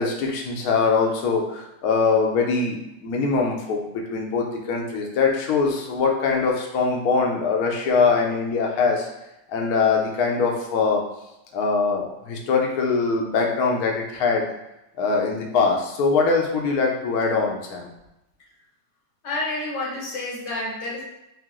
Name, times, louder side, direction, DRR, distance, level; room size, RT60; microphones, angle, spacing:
voice 1, 0.0-9.1 9.5-11.0 11.5-14.5 15.0-17.9, left 4 dB, 70° left, 0 dB, 1.0 m, -22 dB
voice 2, 19.2-21.0, left 2 dB, 85° left, -3 dB, 1.8 m, -29 dB
4.7 x 2.0 x 3.5 m, 0.90 s
omnidirectional pair, 1.9 m